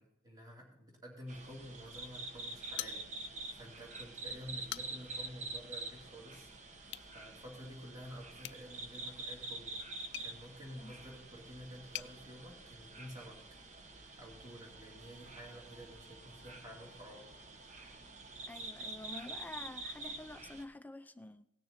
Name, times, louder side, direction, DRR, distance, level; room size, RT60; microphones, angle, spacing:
voice 1, 0.0-6.5 7.1-13.4 14.2-17.3, equal, 20° right, -2 dB, 2.7 m, -51 dB
sound 1, 1.3-20.6, right 2 dB, 35° right, 1.1 m, -47 dB
sound 2, 2.8-3.5 3.9-4.0 4.5-5.2 6.8-7.1 8.4-12.1, left 14 dB, 60° left, 0.4 m, -47 dB
voice 2, 18.5-21.4, left 2 dB, 10° left, 10 dB, 0.5 m, -48 dB
18.5 x 6.8 x 4.3 m, 0.80 s
head